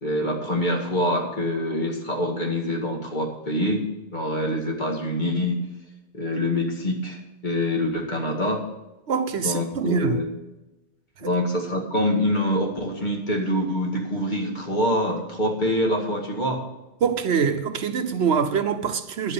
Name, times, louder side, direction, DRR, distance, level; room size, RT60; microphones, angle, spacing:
voice 1, 0.0-3.8 4.1-5.6 6.1-8.6 9.4-10.2 11.2-16.6, left 1 dB, 40° left, 2.2 m, -25 dB
voice 2, 9.1-10.2 17.0-19.3, right 6 dB, 70° right, 1.1 m, -24 dB
10.5 x 8.3 x 7.0 m
omnidirectional pair, 1.2 m